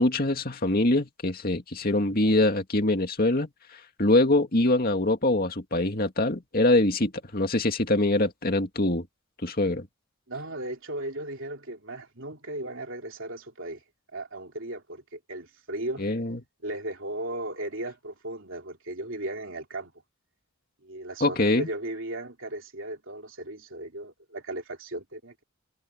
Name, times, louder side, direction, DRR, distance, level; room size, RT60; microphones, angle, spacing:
voice 1, 0.0-9.1 9.4-9.9 16.0-16.4 21.2-21.7, left 2 dB, 45° left, 2.3 m, -24 dB
voice 2, 10.3-13.8 14.1-16.0 16.6-19.9 20.8-25.4, right 1 dB, 60° right, 3.5 m, -36 dB
head